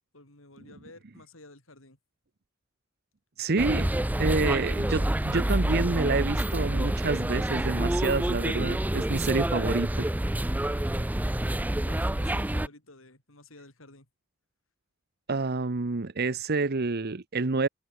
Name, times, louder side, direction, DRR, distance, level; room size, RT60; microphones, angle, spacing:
voice 1, 0.0-2.0 10.7-11.2 11.8-14.1, left 2 dB, 85° left, 7.7 m, -52 dB
voice 2, 3.4-3.9 4.2-10.1 15.3-17.7, right 3 dB, 50° right, 0.9 m, -28 dB
sound 1, 3.6-12.7, right 1 dB, 10° right, 0.5 m, -27 dB
open air
head